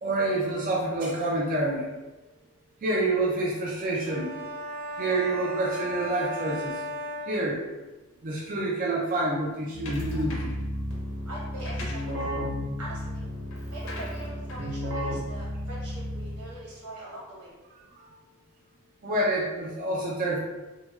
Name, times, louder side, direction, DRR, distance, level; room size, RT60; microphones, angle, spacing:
voice 1, 0.0-1.9 2.8-4.3 5.0-6.8 7.3-7.6 8.2-10.5 19.0-20.4, right 2 dB, 40° right, -4 dB, 0.3 m, -27 dB
sound 1, 4.1-7.9, equal, 10° right, 0.7 m, -36 dB
Keyboard (musical), 9.7-16.6, equal, 60° right, 0.7 m, -33 dB
sound 2, 9.9-10.7 11.4-16.1, left 2 dB, 60° left, 0.5 m, -44 dB
voice 2, 11.2-12.3 12.8-13.2 13.7-17.5, right 1 dB, 90° right, -5 dB, 1.0 m, -42 dB
2.7 x 2.2 x 2.2 m, 1.1 s
head